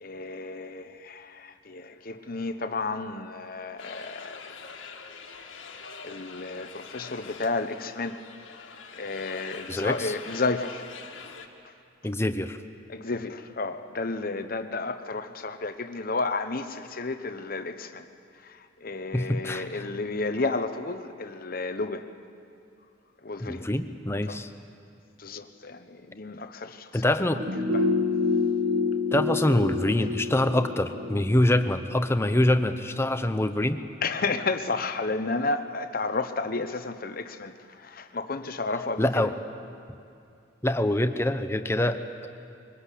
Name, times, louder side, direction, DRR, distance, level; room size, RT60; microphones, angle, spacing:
voice 1, 0.0-4.5 6.0-8.2 8.7-10.9 11.6-11.7 12.9-18.1 18.4-22.1 23.2-23.7 24.3-24.4 25.2-27.4 27.7-27.9 34.0-39.3, left 3 dB, 45° left, 9 dB, 1.0 m, -32 dB
sound 1, 3.8-11.5, left 5 dB, 80° left, 1.8 m, -44 dB
voice 2, 9.7-10.1 12.0-12.6 19.1-19.7 23.4-24.5 26.9-27.4 29.1-33.8 39.0-39.3 40.6-42.3, left 1 dB, 15° left, 9 dB, 0.8 m, -25 dB
sound 2, 27.4-32.5 32.8-32.9, left 4 dB, 85° right, 1.7 m, -28 dB
23.0 x 19.5 x 8.4 m, 2.5 s
head